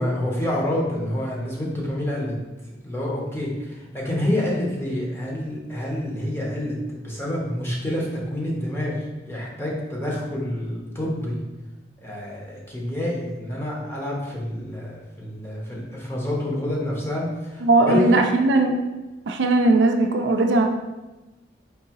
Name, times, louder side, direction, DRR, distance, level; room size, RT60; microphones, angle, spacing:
voice 1, 0.0-2.3 2.8-11.4 12.0-18.2, left 1 dB, 15° left, -3 dB, 0.7 m, -27 dB
voice 2, 17.6-18.7 19.3-20.6, right 2 dB, 65° right, 4 dB, 0.4 m, -18 dB
4.6 x 2.7 x 2.9 m, 1.1 s
head